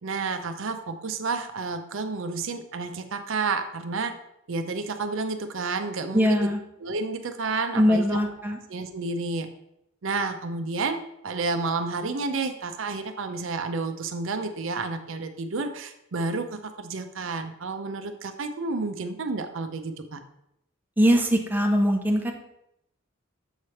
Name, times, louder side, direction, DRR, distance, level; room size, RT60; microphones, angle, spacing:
voice 1, 0.0-4.1 4.5-6.5 6.8-8.2 8.7-9.5 10.0-20.2, right 3 dB, 65° right, 7 dB, 0.6 m, -30 dB
voice 2, 6.1-6.6 7.8-8.6 21.0-22.3, equal, 10° right, 2 dB, 0.6 m, -21 dB
7.2 x 3.3 x 5.6 m, 0.79 s
head